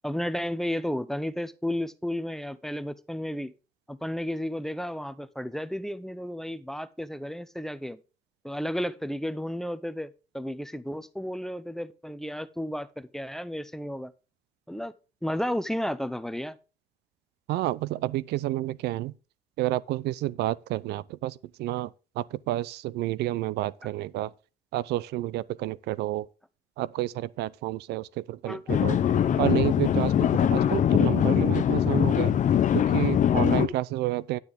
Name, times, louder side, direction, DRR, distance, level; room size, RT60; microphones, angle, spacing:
voice 1, 0.0-3.5 3.9-8.0 8.4-14.1 14.7-14.9 15.2-16.6 28.4-28.6, equal, ahead, 0.6 m, -33 dB
voice 2, 17.5-19.1 19.6-21.9 22.2-24.3 24.7-26.3 26.8-29.0 29.4-32.4 32.7-34.4, right 16 dB, 80° right, 0.5 m, -30 dB
sound 1, 28.7-33.7, left 9 dB, 50° left, 0.8 m, -22 dB
9.6 x 9.6 x 3.5 m
cardioid pair, 110°, 17 cm